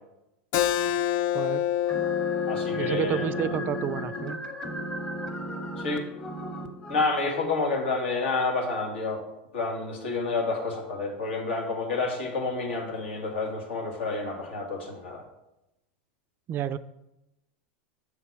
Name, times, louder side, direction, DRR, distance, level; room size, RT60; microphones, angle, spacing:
Keyboard (musical), 0.5-5.7, left 11 dB, 55° left, 0.3 m, -29 dB
voice 1, 1.3-1.7 2.7-4.4 16.5-16.8, right 10 dB, 35° right, 14 dB, 0.3 m, -30 dB
sound 1, 1.9-7.1, right 1 dB, 10° left, 0.8 m, -35 dB
voice 2, 2.5-3.5 5.8-6.0 6.9-9.2 9.5-15.2, left 3 dB, 80° left, 0 dB, 1.9 m, -29 dB
6.8 x 4.0 x 4.7 m, 0.91 s
hypercardioid pair, 100°, 6 cm